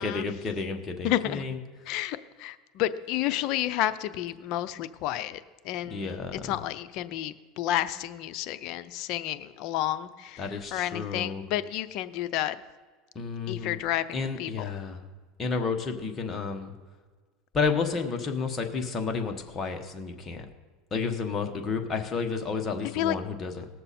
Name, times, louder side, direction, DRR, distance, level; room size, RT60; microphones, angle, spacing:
voice 1, 0.0-1.6 5.9-6.4 10.4-11.4 13.1-13.8 14.1-15.0 15.4-16.7 17.5-20.4 20.9-23.7, left 4 dB, 25° left, 4 dB, 1.3 m, -31 dB
voice 2, 1.0-1.4 1.9-6.2 6.4-12.6 13.5-14.6 22.9-23.2, left 13 dB, 60° left, 13 dB, 0.6 m, -31 dB
19.0 x 6.8 x 4.3 m, 1.4 s
supercardioid pair, 125°, 0 cm